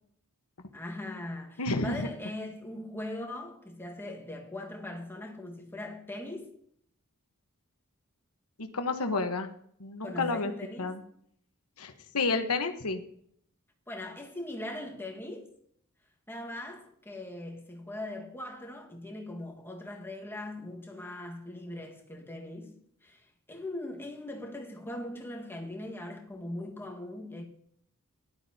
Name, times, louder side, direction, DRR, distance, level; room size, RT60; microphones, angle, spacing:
voice 1, 0.7-6.5 10.0-11.0 13.9-15.5 16.3-27.4, left 1 dB, 10° left, 1.6 m, -40 dB
voice 2, 1.6-2.1 8.6-9.5 9.8-10.5 10.8-11.0 11.8-13.0, left 3 dB, 75° left, 1.2 m, -30 dB
17.5 x 11.5 x 2.8 m
head